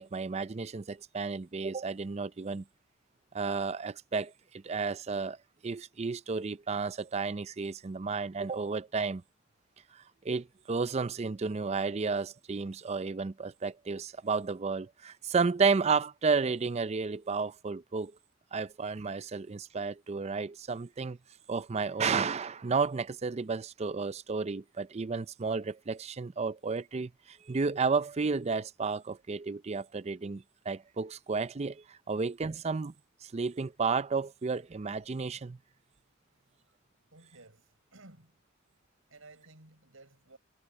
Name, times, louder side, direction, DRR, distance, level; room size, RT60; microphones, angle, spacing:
voice 1, 0.0-2.6 3.3-5.4 5.6-9.2 9.9-18.1 18.5-21.2 21.5-32.9 33.2-35.6, right 4 dB, 30° right, 0.5 m, -32 dB
voice 2, 36.3-36.8 37.1-38.4 39.1-40.4, right 2 dB, 80° right, 6.2 m, -56 dB
head